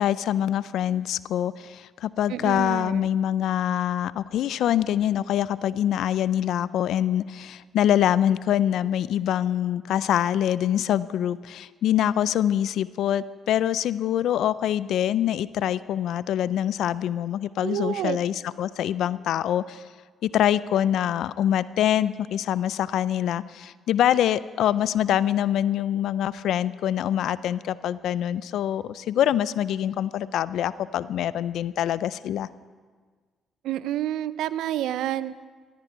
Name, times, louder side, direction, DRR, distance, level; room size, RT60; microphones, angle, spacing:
voice 1, 0.0-19.8 20.2-32.5, left 11 dB, 80° left, 17 dB, 0.3 m, -25 dB
voice 2, 2.3-3.1 17.6-18.2 33.6-35.3, right 12 dB, 85° right, 16 dB, 0.4 m, -29 dB
14.0 x 13.5 x 4.6 m, 1.5 s
cardioid pair, 90°, 0 cm